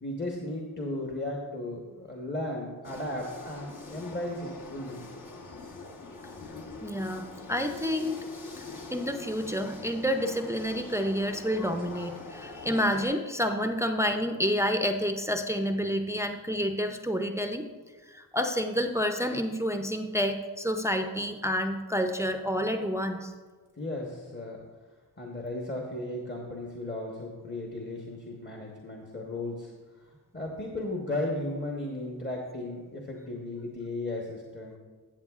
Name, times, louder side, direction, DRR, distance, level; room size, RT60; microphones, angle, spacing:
voice 1, 0.0-5.1 23.8-24.6 25.2-29.7 30.3-34.8, left 1 dB, 30° left, -1 dB, 1.1 m, -35 dB
sound 1, 2.8-13.1, left 3 dB, 60° left, 1.2 m, -43 dB
voice 2, 6.8-8.2 8.9-17.7 18.1-23.3, equal, 10° right, 5 dB, 0.5 m, -29 dB
13.5 x 7.9 x 2.4 m, 1.4 s
wide cardioid pair, 90°, 36 cm